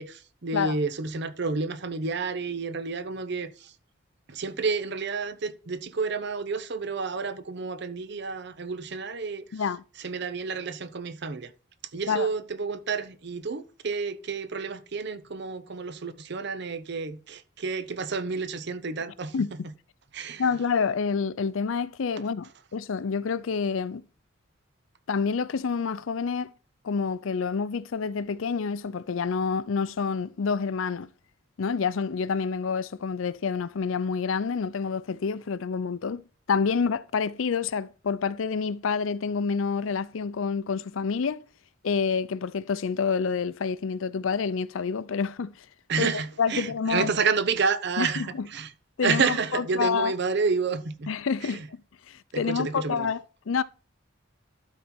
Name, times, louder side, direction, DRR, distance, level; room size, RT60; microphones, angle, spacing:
voice 1, 0.0-3.7 4.3-9.6 10.0-11.5 11.9-19.3 20.1-20.5 45.9-48.7 49.0-51.1 51.4-51.7 52.3-53.1, right 4 dB, 55° right, 0.7 m, -30 dB
voice 2, 9.5-9.8 12.1-12.3 19.3-19.5 20.4-24.0 25.1-26.5 26.8-31.1 31.6-36.2 36.5-41.4 41.8-45.5 46.0-47.1 48.0-48.3 49.0-50.1 51.1-51.8 52.1-53.6, left 5 dB, 70° left, 0.5 m, -28 dB
12.0 x 4.2 x 4.4 m
head